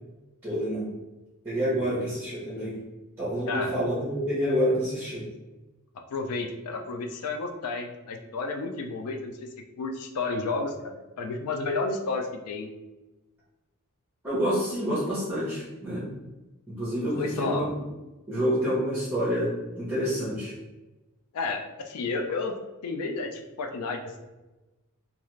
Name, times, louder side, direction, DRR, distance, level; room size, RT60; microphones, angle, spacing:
voice 1, 0.4-0.9 1.4-2.8 3.2-5.3 14.2-16.1 16.7-17.7 18.3-20.5, equal, 10° right, -10 dB, 0.8 m, -28 dB
voice 2, 1.7-2.0 3.5-3.7 5.9-9.5 9.8-12.7 17.0-17.6 21.3-22.5 22.8-24.2, left 3 dB, 85° left, 4 dB, 0.4 m, -32 dB
2.4 x 2.4 x 3.1 m, 1.1 s
head